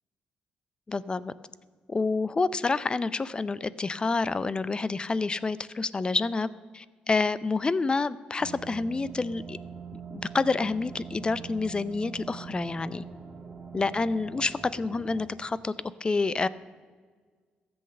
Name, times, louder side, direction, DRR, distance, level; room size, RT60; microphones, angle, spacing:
voice 1, 0.9-1.3 1.9-6.5 6.7-9.6 9.9-13.0 13.7-15.7 16.0-16.5, left 3 dB, 30° left, 18 dB, 0.5 m, -28 dB
sound 1, 8.4-15.3, right 6 dB, 35° right, 2.1 m, -43 dB
13.5 x 8.0 x 6.7 m, 1.5 s
supercardioid pair, 70°, 3 cm